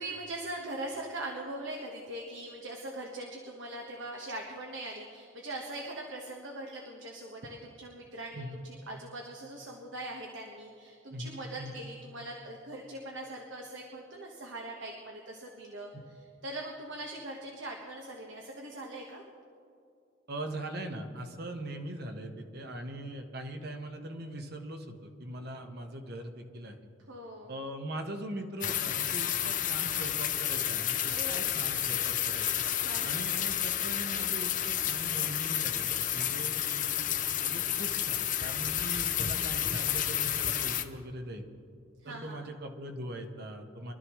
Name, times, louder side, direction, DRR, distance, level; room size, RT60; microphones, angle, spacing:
voice 1, 0.0-15.9 16.4-19.2 27.1-27.5 31.1-31.7 32.8-33.2 42.0-42.5, right 1 dB, 75° right, -1 dB, 1.4 m, -41 dB
voice 2, 11.1-11.7 20.3-26.8 27.5-32.6 33.0-37.0 37.4-41.4 42.0-43.9, right 1 dB, 55° right, 4 dB, 1.3 m, -41 dB
sound 1, 28.6-40.8, left 10 dB, 40° left, 0.7 m, -31 dB
24.0 x 13.0 x 3.2 m, 2.5 s
head